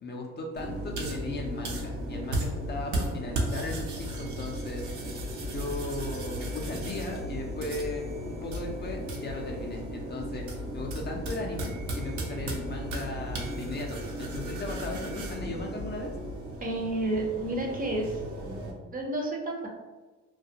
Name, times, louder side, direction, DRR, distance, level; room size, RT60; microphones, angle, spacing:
voice 1, 0.0-4.9 5.4-10.5 10.7-16.1, left 2 dB, 35° left, 0 dB, 0.4 m, -37 dB
sound 1, 0.6-18.7, right 1 dB, 75° right, 0.6 m, -35 dB
voice 2, 16.6-18.2 18.9-19.7, right 2 dB, 30° right, 0 dB, 0.5 m, -30 dB
2.4 x 2.2 x 2.7 m, 1.3 s
cardioid pair, 90°, 30 cm